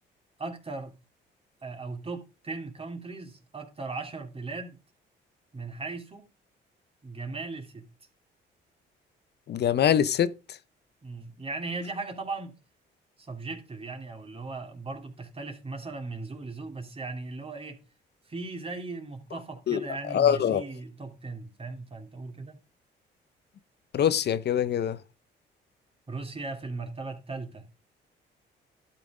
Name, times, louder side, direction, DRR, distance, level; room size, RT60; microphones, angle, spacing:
voice 1, 0.4-0.9 1.6-4.8 5.5-6.3 7.0-7.9 11.0-12.6 13.2-17.8 18.3-22.6 26.1-27.7, right 3 dB, 30° right, 2.8 m, -38 dB
voice 2, 9.5-10.6 19.7-19.8 20.1-20.6 23.9-25.0, left 9 dB, 55° left, 0.7 m, -24 dB
12.0 x 5.8 x 4.9 m
cardioid pair, 90°, 20 cm